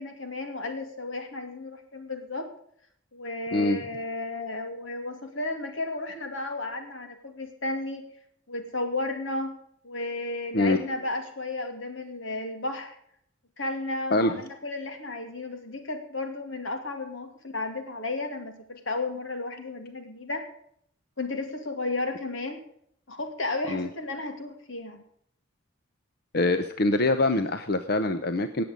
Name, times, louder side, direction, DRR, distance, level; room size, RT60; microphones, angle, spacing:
voice 1, 0.0-2.5 3.1-8.0 8.5-9.5 9.8-12.9 13.6-20.4 21.2-22.6 23.1-25.0, left 2 dB, 85° left, 5 dB, 2.6 m, -33 dB
voice 2, 26.3-28.6, left 2 dB, 55° left, 9 dB, 0.8 m, -24 dB
19.0 x 7.7 x 5.3 m, 0.67 s
head